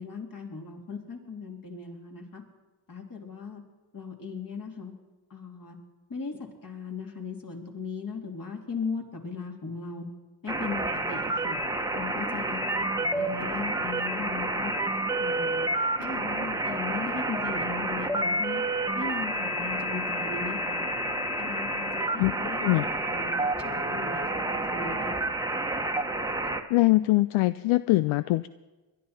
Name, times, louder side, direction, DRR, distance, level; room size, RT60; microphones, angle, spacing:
voice 1, 0.0-2.4 2.9-3.6 3.9-4.9 5.3-5.8 6.1-10.1 10.4-11.6 11.9-14.7 15.2-15.7 16.0-18.6 19.0-20.9 21.4-25.3, left 5 dB, 40° left, 1 dB, 3.3 m, -38 dB
sound 1, 10.5-26.6, right 1 dB, 5° right, 1.3 m, -29 dB
voice 2, 26.7-28.5, left 19 dB, 75° left, 15 dB, 0.6 m, -23 dB
21.0 x 11.5 x 4.4 m, 1.2 s
supercardioid pair, 70°, 50 cm